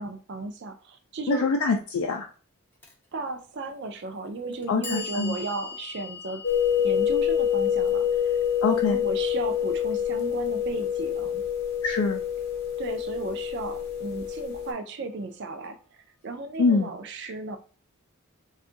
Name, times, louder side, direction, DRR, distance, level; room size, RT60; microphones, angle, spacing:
voice 1, 0.0-1.5 3.1-6.4 6.8-8.4 8.8-11.4 12.8-15.8 16.2-17.6, right 3 dB, 50° right, 8 dB, 0.4 m, -35 dB
voice 2, 1.3-2.3 4.7-5.3 8.6-9.0 11.8-12.2 16.6-16.9, left 4 dB, 85° left, 2 dB, 0.4 m, -24 dB
Clock, 2.8-2.9 3.9-4.0 4.5-10.6, left 5 dB, 10° left, 0.4 m, -42 dB
sound 1, 6.4-14.7, left 9 dB, 50° left, 0.7 m, -26 dB
2.6 x 2.3 x 3.7 m, 0.39 s
head